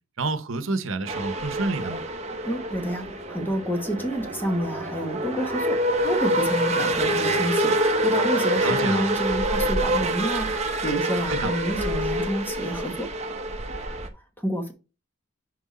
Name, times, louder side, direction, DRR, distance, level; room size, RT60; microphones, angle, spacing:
voice 1, 0.2-2.0 8.6-9.1 11.3-11.5, right 3 dB, 75° right, 0.9 m, -28 dB
sound 1, 1.0-14.1, right 1 dB, 30° right, 0.9 m, -26 dB
voice 2, 2.4-13.1 14.1-14.7, equal, 10° left, 1.2 m, -29 dB
6.2 x 4.7 x 4.1 m
head